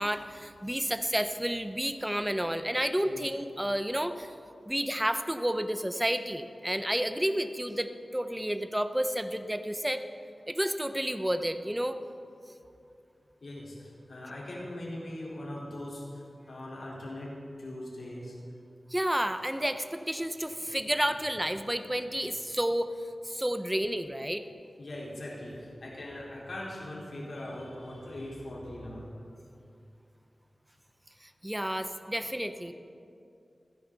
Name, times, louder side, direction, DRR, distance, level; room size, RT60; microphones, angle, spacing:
voice 1, 0.0-4.3 4.6-10.0 10.5-12.0 18.9-24.4 31.2-32.7, equal, 10° right, 9 dB, 0.8 m, -31 dB
voice 2, 13.4-18.4 24.8-29.1, left 1 dB, 70° left, -5 dB, 4.3 m, -41 dB
28.0 x 10.0 x 4.1 m, 2.6 s
wide cardioid pair, 75°, 0 cm